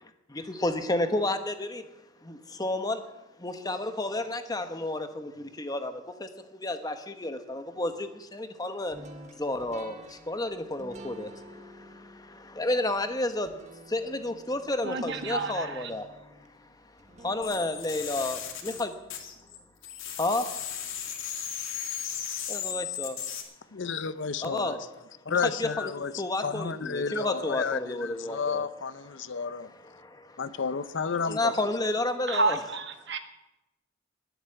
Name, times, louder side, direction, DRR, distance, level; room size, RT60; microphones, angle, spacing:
voice 1, 0.3-1.9 2.2-3.0 3.4-9.0 9.4-13.5 13.9-16.0 16.6-16.7 17.2-18.9 20.2-20.5 22.5-23.2 24.4-24.8 25.3-25.9 26.2-28.7 29.9-30.4 31.2-32.6, left 2 dB, 20° left, 8 dB, 1.0 m, -31 dB
sound 1, 8.9-20.0, right 1 dB, 35° right, 1.5 m, -50 dB
voice 2, 14.8-15.9 32.3-33.2, right 3 dB, 55° right, 7 dB, 1.5 m, -30 dB
sound 2, 17.4-19.6 19.8-23.4, left 9 dB, 75° left, 2.3 m, -36 dB
voice 3, 23.7-24.8 25.2-29.7 30.4-31.5, left 5 dB, 60° left, 15 dB, 0.6 m, -32 dB
20.0 x 8.1 x 7.7 m, 0.96 s
head